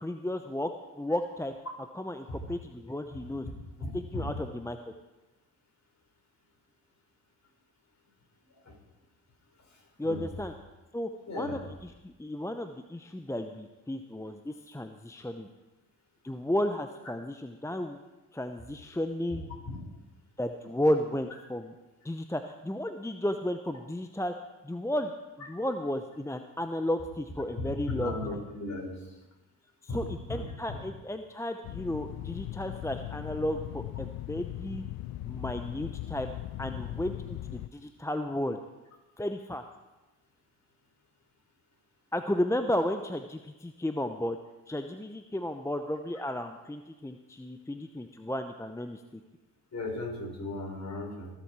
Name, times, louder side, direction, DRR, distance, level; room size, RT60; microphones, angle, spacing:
voice 1, 0.0-1.5 1.9-3.5 3.9-4.8 10.0-10.5 10.9-15.5 16.2-18.0 18.3-19.5 20.4-21.7 22.0-24.3 24.6-25.1 25.4-28.4 29.8-34.8 35.3-36.3 36.6-38.6 39.2-39.6 42.1-44.4 44.7-49.2, left 1 dB, 5° left, 7 dB, 0.8 m, -33 dB
voice 2, 3.8-4.3 10.0-10.2 11.3-11.6 19.3-19.8 27.6-28.9 29.9-30.0 30.3-30.8 49.7-51.3, left 2 dB, 45° left, 0 dB, 4.9 m, -36 dB
sound 1, 31.6-37.7, left 15 dB, 65° left, 0.6 m, -39 dB
21.0 x 7.3 x 4.8 m, 1.1 s
supercardioid pair, 55°, 39 cm